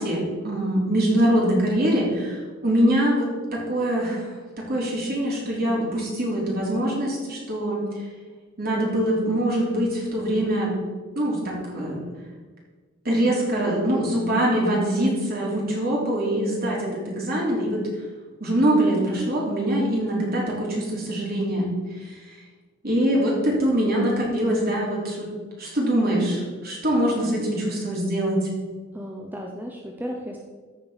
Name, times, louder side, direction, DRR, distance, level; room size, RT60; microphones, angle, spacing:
voice 1, 0.0-7.8 8.6-10.7 11.2-12.0 13.0-17.8 18.4-21.7 22.0-22.4 22.8-25.3 25.6-28.5, right 1 dB, 50° right, -3 dB, 3.6 m, -23 dB
voice 2, 28.9-30.4, equal, 10° right, 0 dB, 0.8 m, -34 dB
14.5 x 5.3 x 5.7 m, 1.4 s
head